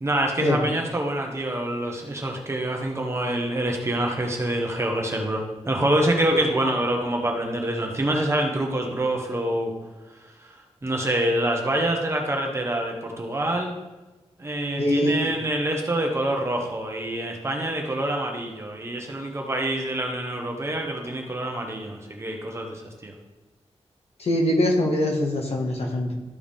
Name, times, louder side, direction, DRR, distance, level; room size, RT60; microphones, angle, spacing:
voice 1, 0.0-9.7 10.8-13.7 14.4-23.1, right 1 dB, 25° right, 1 dB, 1.2 m, -26 dB
voice 2, 14.8-15.3 24.2-26.1, left 1 dB, 70° left, 0 dB, 1.7 m, -23 dB
13.0 x 4.7 x 3.6 m, 1.2 s
wide cardioid pair, 175°, 11 cm